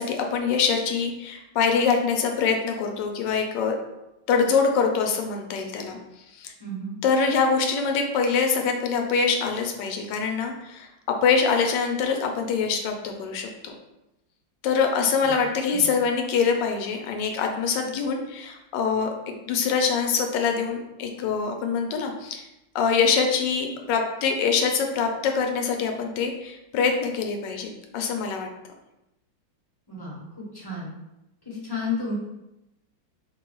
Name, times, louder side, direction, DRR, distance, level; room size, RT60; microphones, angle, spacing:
voice 1, 0.0-3.8 4.3-6.0 6.4-6.5 7.0-13.7 14.6-22.4 22.7-28.5, left 5 dB, 75° left, 3 dB, 1.2 m, -24 dB
voice 2, 6.6-7.0 15.2-15.4 15.7-15.9 29.9-30.9 31.4-32.1, left 3 dB, 20° left, -7 dB, 0.6 m, -32 dB
4.9 x 2.3 x 3.0 m, 0.92 s
omnidirectional pair, 2.1 m